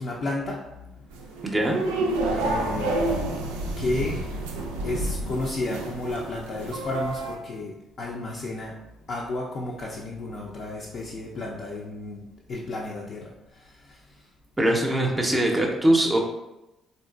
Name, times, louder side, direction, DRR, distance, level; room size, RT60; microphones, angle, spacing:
voice 1, 0.0-1.6 2.2-3.2 3.7-14.3, left 2 dB, 45° left, -3 dB, 0.4 m, -33 dB
sound 1, 1.1-7.4, right 2 dB, 70° right, 0.3 m, -29 dB
voice 2, 1.4-1.8 14.6-16.2, right 1 dB, 15° right, 0 dB, 0.5 m, -22 dB
3.6 x 2.7 x 2.3 m, 0.94 s
figure-of-eight pair, 45°, 0 cm